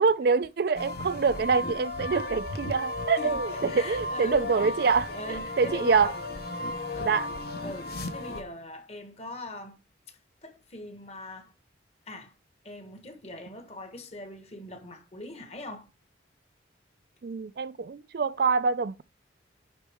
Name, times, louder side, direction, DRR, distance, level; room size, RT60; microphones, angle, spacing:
voice 1, 0.0-6.1 7.0-7.3 17.2-19.0, right 5 dB, 55° right, 0.4 m, -25 dB
sound 1, 0.7-8.4, left 2 dB, 55° left, 1.0 m, -34 dB
voice 2, 3.2-4.7 5.1-6.3 6.8-9.8 10.1-11.5 12.1-12.3 12.6-15.9, left 1 dB, 35° left, 1.3 m, -41 dB
10.0 x 4.0 x 3.5 m
head